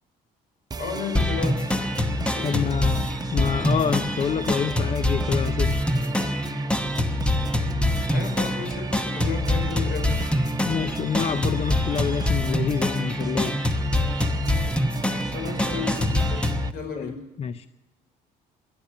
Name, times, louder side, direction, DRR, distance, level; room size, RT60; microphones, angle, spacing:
sound 1, 0.7-16.7, right 5 dB, 20° right, 0.7 m, -35 dB
voice 1, 0.8-1.8 2.3-2.7 8.1-10.2 15.3-17.2, left 5 dB, 65° left, 4 dB, 5.0 m, -33 dB
sound 2, 1.1-16.7, left 1 dB, 5° left, 0.9 m, -25 dB
voice 2, 2.4-5.7 10.6-13.6 17.0-17.7, left 7 dB, 35° left, 13 dB, 0.5 m, -27 dB
11.5 x 11.0 x 9.7 m, 1.1 s
cardioid pair, 110°, 17 cm